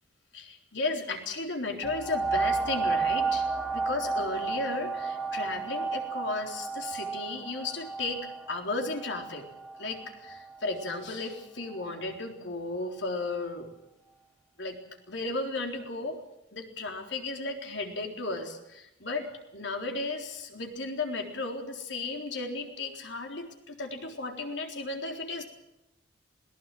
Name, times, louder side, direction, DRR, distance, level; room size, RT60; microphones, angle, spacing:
voice 1, 0.3-3.4 3.7-9.4 9.8-13.7 14.6-14.8 15.1-16.2 16.5-25.4, left 3 dB, 65° left, 3 dB, 3.9 m, -34 dB
sound 1, 1.8-11.1 11.7-11.8, right 4 dB, 5° left, 1.2 m, -32 dB
21.0 x 19.5 x 7.7 m, 0.89 s
head